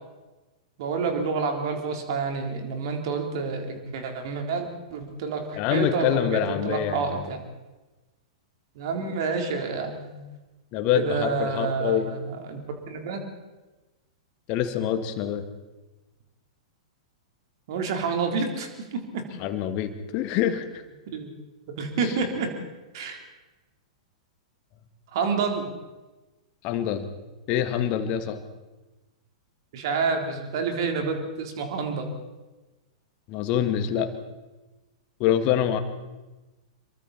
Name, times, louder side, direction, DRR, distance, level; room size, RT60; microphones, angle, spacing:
voice 1, 0.8-7.4 8.8-10.2 10.9-12.6 12.9-13.2 17.7-19.2 21.1-21.3 21.8-22.5 22.9-23.2 25.1-25.7 29.7-32.2, right 4 dB, 50° right, 3 dB, 3.9 m, -28 dB
voice 2, 5.5-7.2 10.7-12.1 14.5-15.4 19.4-20.8 22.0-22.1 26.6-27.0 27.5-28.4 33.3-34.1 35.2-35.8, left 10 dB, 35° left, 8 dB, 2.1 m, -25 dB
26.5 x 23.0 x 4.4 m, 1.1 s
figure-of-eight pair, 100°, 3 cm